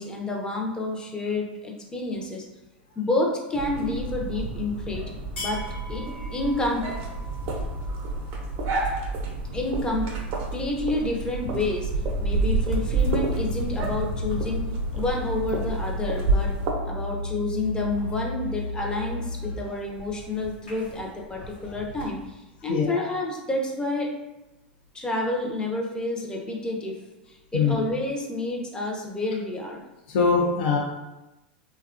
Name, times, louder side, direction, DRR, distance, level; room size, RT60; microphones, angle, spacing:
voice 1, 0.0-2.5 3.0-5.1 5.4-6.8 9.5-11.9 12.2-14.7 15.0-16.5 16.8-24.1 24.9-29.8, left 2 dB, 15° left, -1 dB, 0.5 m, -29 dB
sound 1, 3.5-16.7, right 3 dB, 50° right, 0.5 m, -29 dB
sound 2, 3.9-22.3, left 1 dB, 80° left, 0.8 m, -41 dB
sound 3, 12.9-19.6, left 2 dB, 40° left, 1.2 m, -33 dB
voice 2, 22.7-23.0 27.5-27.8 30.1-30.8, left 5 dB, 65° left, -1 dB, 0.5 m, -22 dB
2.6 x 2.2 x 2.5 m, 0.99 s
hypercardioid pair, 105°, 6 cm